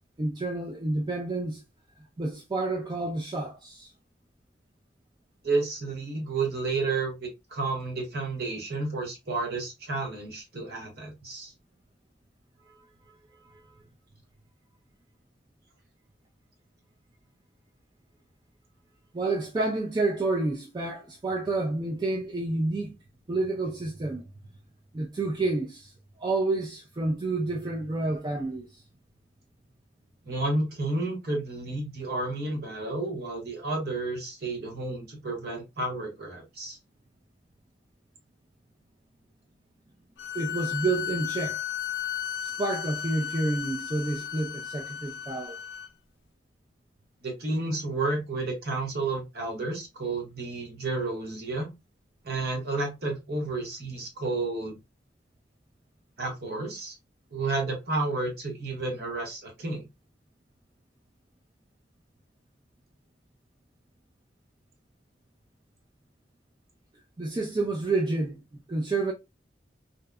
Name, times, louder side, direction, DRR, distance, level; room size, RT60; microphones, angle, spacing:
voice 1, 0.2-1.6 2.2-3.9 13.4-13.6 19.1-22.9 23.3-24.3 24.9-25.9 26.2-28.8 40.3-41.6 42.4-45.6 67.2-68.4 68.7-69.1, right 2 dB, 25° right, 0.3 m, -29 dB
voice 2, 5.4-11.5 30.2-36.8 47.2-51.7 52.2-54.8 56.2-56.9 57.3-59.8, right 3 dB, 60° right, 1.0 m, -31 dB
sound 1, 40.2-45.9, left 9 dB, 80° left, 0.4 m, -35 dB
2.7 x 2.1 x 2.2 m
head